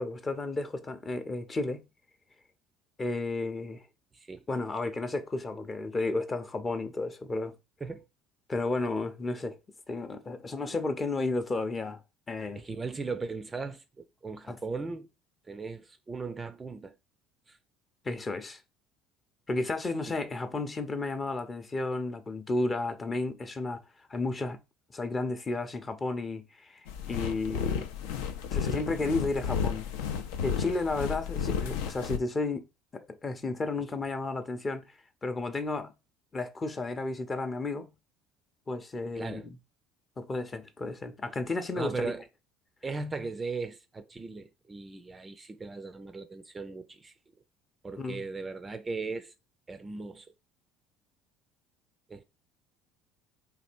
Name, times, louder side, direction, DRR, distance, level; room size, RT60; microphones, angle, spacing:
voice 1, 0.0-1.9 3.0-3.8 4.5-7.5 8.5-9.6 9.9-12.0 12.3-12.6 14.5-14.6 18.0-18.6 19.5-23.8 24.1-24.6 24.9-26.8 27.1-27.9 28.5-29.9 30.4-32.7 32.9-34.9 35.2-35.9 36.3-37.9 38.7-39.6 40.2-42.1 48.0-48.2, left 3 dB, 25° left, 0.7 m, -32 dB
voice 2, 4.1-4.4 7.8-8.1 12.6-15.1 15.5-16.9 17.5-17.6 20.1-20.2 39.2-39.5 41.7-42.2 42.8-47.1 47.8-49.3 49.7-50.3 52.1-52.2, right 4 dB, 20° right, 0.4 m, -38 dB
sound 1, 26.9-32.2, left 7 dB, 65° left, 0.5 m, -32 dB
4.1 x 2.8 x 4.1 m
figure-of-eight pair, 60°, 0 cm